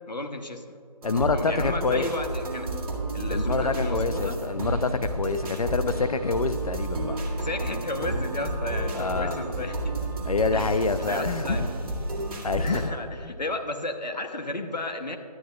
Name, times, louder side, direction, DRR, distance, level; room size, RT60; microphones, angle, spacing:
voice 1, 0.1-0.7 1.3-2.7 3.1-4.4 7.4-9.8 10.5-11.6 12.6-15.2, left 2 dB, 85° left, 5 dB, 0.9 m, -33 dB
voice 2, 1.0-2.1 3.3-7.2 8.9-9.4 10.3-11.6 12.4-12.8 13.2-13.3, left 4 dB, 60° left, 11 dB, 0.4 m, -27 dB
sound 1, 1.0-12.9, right 1 dB, 60° right, 2.0 m, -30 dB
11.5 x 9.4 x 2.3 m, 2.5 s
figure-of-eight pair, 155°, 21 cm